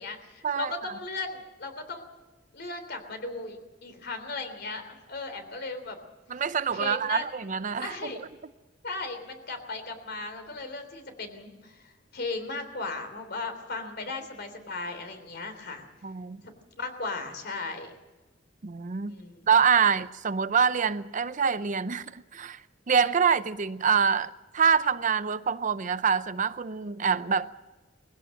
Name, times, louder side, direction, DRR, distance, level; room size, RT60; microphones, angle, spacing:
voice 1, 0.0-2.0 2.5-6.0 6.7-7.2 7.8-8.2 8.8-15.9 16.4-16.5 16.8-17.9 19.0-19.5, left 3 dB, 55° left, 3.4 m, -36 dB
voice 2, 6.3-8.1 16.0-16.4 18.6-19.2 19.5-22.6 22.9-27.5, right 6 dB, 40° right, 0.6 m, -25 dB
21.0 x 16.0 x 7.7 m
head